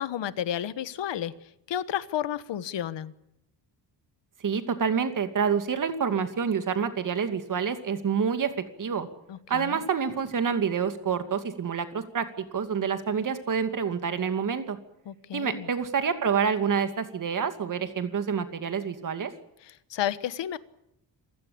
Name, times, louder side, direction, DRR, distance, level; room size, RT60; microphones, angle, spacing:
voice 1, 0.0-1.3 1.7-3.1 9.3-9.8 15.1-15.7 19.9-20.6, left 10 dB, 75° left, 15 dB, 1.4 m, -31 dB
voice 2, 4.4-8.5 8.8-9.1 9.5-14.8 15.3-19.3, right 6 dB, 45° right, 9 dB, 2.5 m, -27 dB
27.5 x 16.5 x 8.7 m, 0.82 s
wide cardioid pair, 160°, 44 cm